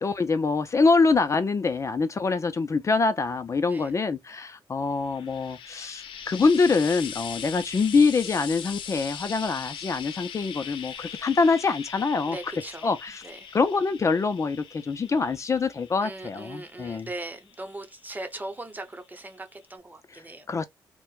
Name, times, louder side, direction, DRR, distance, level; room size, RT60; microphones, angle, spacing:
voice 1, 0.0-12.4 12.8-13.2 13.5-17.1 20.5-20.7, left 4 dB, 35° left, 0.5 m, -24 dB
Frying (food), 4.9-18.3 19.3-19.4, left 8 dB, 80° left, 0.7 m, -41 dB
voice 2, 12.3-12.9 13.2-13.6 16.0-20.5, right 2 dB, 20° right, 0.9 m, -39 dB
4.3 x 2.2 x 2.4 m
cardioid pair, 75°, 8 cm